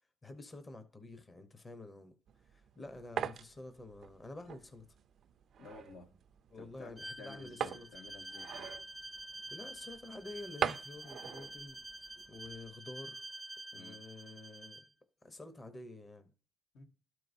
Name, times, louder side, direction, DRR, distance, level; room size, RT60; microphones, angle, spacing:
voice 1, 0.2-2.2 2.4-4.8 6.5-7.9 9.5-11.8 12.1-13.2 13.7-14.8 15.2-16.3, left 2 dB, 25° left, 0.8 m, -49 dB
sound 1, 2.3-12.7, right 8 dB, 65° right, 0.4 m, -43 dB
voice 2, 5.6-6.1 6.5-8.7 13.7-14.0 16.7-16.8, left 3 dB, 75° left, 1.3 m, -53 dB
Bowed string instrument, 7.0-14.9, right 1 dB, 5° right, 0.5 m, -48 dB
12.0 x 4.6 x 2.7 m
cardioid pair, 90°, 0 cm